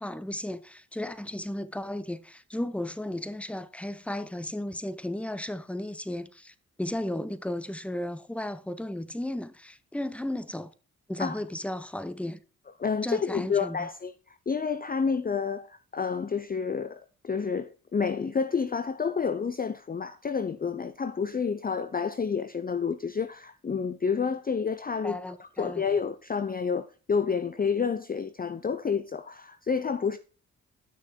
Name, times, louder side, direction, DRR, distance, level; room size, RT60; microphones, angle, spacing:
voice 1, 0.0-10.7 11.1-12.4 13.0-13.9 25.0-25.8, left 1 dB, 5° left, 0.9 m, -34 dB
voice 2, 12.8-30.2, left 6 dB, 25° left, 0.6 m, -29 dB
9.5 x 6.3 x 4.3 m
supercardioid pair, 45°, 37 cm